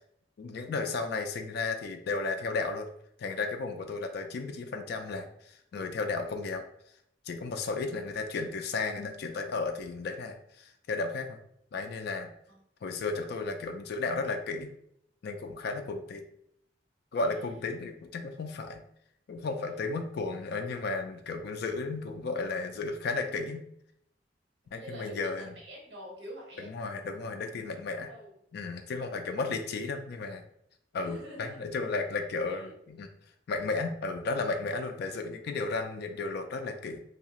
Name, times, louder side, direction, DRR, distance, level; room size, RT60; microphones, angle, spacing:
voice 1, 0.4-2.9 3.2-6.7 7.3-11.4 11.7-12.3 12.8-14.7 15.2-16.2 17.1-18.8 19.3-23.6 24.7-25.5 26.6-28.1 28.5-30.4 30.9-33.1 33.5-37.0, left 3 dB, 60° left, 5 dB, 0.3 m, -34 dB
voice 2, 12.9-13.4 17.2-17.6 24.7-26.7 28.1-28.3 31.0-31.6 32.5-32.7, equal, 70° right, -3 dB, 1.2 m, -47 dB
2.7 x 2.4 x 2.9 m, 0.71 s
head